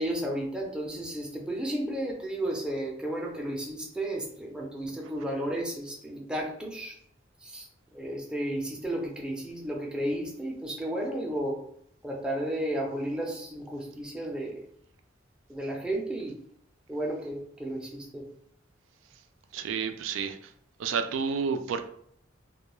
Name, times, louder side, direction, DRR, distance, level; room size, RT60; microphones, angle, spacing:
voice 1, 0.0-6.9 7.4-7.7 7.9-11.6 12.0-14.6 15.5-16.4 16.9-18.3, right 1 dB, 5° right, -1 dB, 0.4 m, -33 dB
voice 2, 19.5-20.5 20.8-21.8, right 6 dB, 90° right, 8 dB, 0.3 m, -30 dB
2.2 x 2.2 x 3.0 m, 0.67 s
head